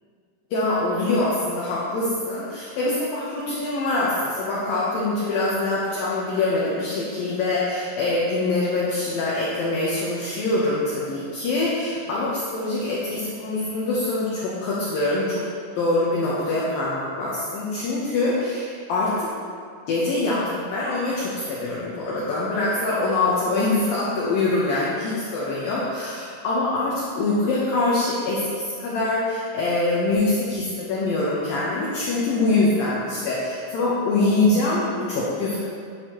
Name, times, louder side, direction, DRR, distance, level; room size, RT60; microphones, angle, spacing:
voice 1, 0.5-13.0 13.4-15.5 15.8-19.3 19.9-35.6, left 2 dB, 70° left, -7 dB, 2.3 m, -24 dB
9.9 x 6.5 x 3.0 m, 2.2 s
omnidirectional pair, 5.2 m